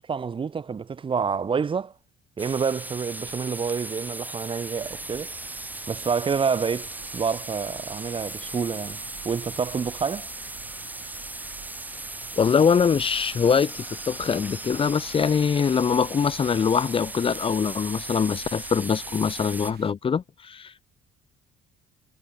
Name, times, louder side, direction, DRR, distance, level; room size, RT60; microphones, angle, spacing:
voice 1, 0.0-1.9 2.4-5.3 5.9-9.0 9.2-10.3, right 6 dB, 30° right, 1.4 m, -28 dB
sound 1, 2.4-19.7, right 2 dB, 10° right, 4.9 m, -37 dB
sound 2, 4.7-19.9, right 14 dB, 70° right, 6.9 m, -49 dB
voice 2, 12.4-20.8, left 6 dB, 30° left, 1.1 m, -23 dB
cardioid pair, 110°, 17 cm